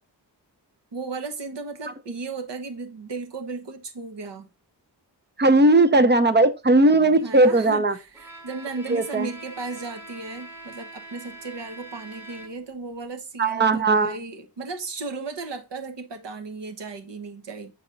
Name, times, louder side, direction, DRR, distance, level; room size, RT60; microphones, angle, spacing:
voice 1, 0.9-4.5 7.2-17.7, right 3 dB, 75° right, 1.1 m, -35 dB
voice 2, 5.4-7.9 8.9-9.3 13.4-14.2, right 2 dB, 25° right, 0.5 m, -18 dB
Bowed string instrument, 8.1-12.8, right 2 dB, 5° right, 0.9 m, -43 dB
6.5 x 4.1 x 3.8 m
wide cardioid pair, 140°, 43 cm